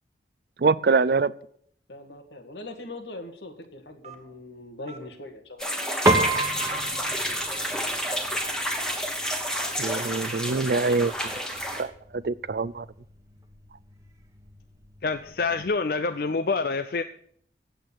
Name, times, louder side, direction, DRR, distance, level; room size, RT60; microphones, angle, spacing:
voice 1, 0.6-1.3 9.8-11.1 11.8-11.9 12.2-12.8, right 4 dB, 55° right, 19 dB, 0.4 m, -24 dB
voice 2, 1.9-5.7, left 2 dB, 80° left, 6 dB, 1.9 m, -41 dB
Telephone, 4.0-4.4 4.9-5.1 5.8-6.2 6.7-6.8 7.6-7.7 8.4-8.5 9.2-9.4 10.0-10.1 10.8-11.0 11.7-11.9, right 3 dB, 35° right, 1.5 m, -45 dB
sound 1, 5.6-11.8, equal, 5° left, 1.4 m, -30 dB
Piano, 6.1-15.7, right 2 dB, 15° right, 1.2 m, -32 dB
voice 3, 15.0-17.0, left 4 dB, 55° left, 10 dB, 0.5 m, -26 dB
8.9 x 8.1 x 8.8 m, 0.63 s
head